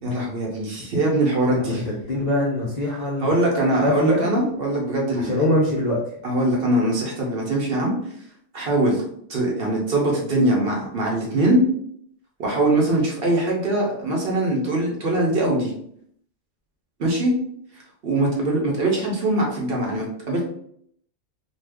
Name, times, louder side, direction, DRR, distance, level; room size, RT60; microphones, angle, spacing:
voice 1, 0.0-1.8 3.2-5.4 6.2-7.9 8.5-9.0 9.3-11.6 12.4-15.7 17.0-17.3 18.0-20.4, right 1 dB, 55° right, -1 dB, 0.9 m, -22 dB
voice 2, 1.6-3.3 3.8-4.2 5.2-6.0, left 1 dB, 50° left, -4 dB, 0.5 m, -23 dB
2.6 x 2.3 x 3.4 m, 0.66 s
omnidirectional pair, 1.3 m